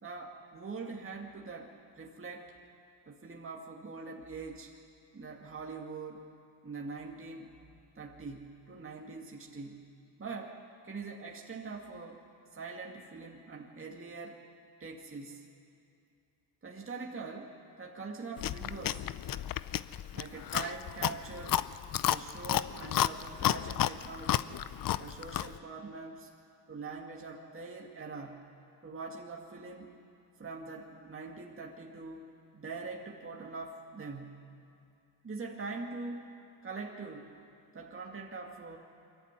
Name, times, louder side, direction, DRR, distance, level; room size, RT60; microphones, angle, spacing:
voice 1, 0.0-2.5 3.1-4.7 5.1-6.3 6.6-7.5 8.0-9.9 10.2-12.2 12.5-14.4 14.8-15.5 16.6-19.1 20.1-21.7 22.0-24.7 25.0-26.3 26.7-28.5 28.8-29.9 30.4-34.5 35.2-36.3 36.6-37.3 37.7-38.8, right 4 dB, 25° right, 0 dB, 2.2 m, -43 dB
Chewing mastication, 18.4-25.6, left 11 dB, 45° left, 0.6 m, -32 dB
23.0 x 14.5 x 9.7 m, 2.5 s
supercardioid pair, 80°, 50 cm